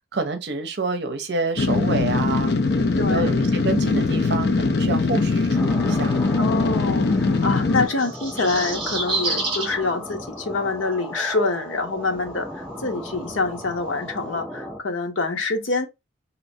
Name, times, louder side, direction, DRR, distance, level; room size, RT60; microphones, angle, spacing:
voice 1, 0.1-2.5 3.1-6.2, right 3 dB, 60° right, 0.6 m, -28 dB
sound 1, 1.6-7.9, left 3 dB, 55° left, 0.5 m, -21 dB
voice 2, 3.0-3.4 6.4-15.9, left 3 dB, 90° left, 0.9 m, -26 dB
sound 2, 5.5-14.8, equal, ahead, 0.4 m, -36 dB
sound 3, 7.9-9.7 11.1-11.2, right 3 dB, 25° right, 1.5 m, -27 dB
3.1 x 2.8 x 2.7 m
head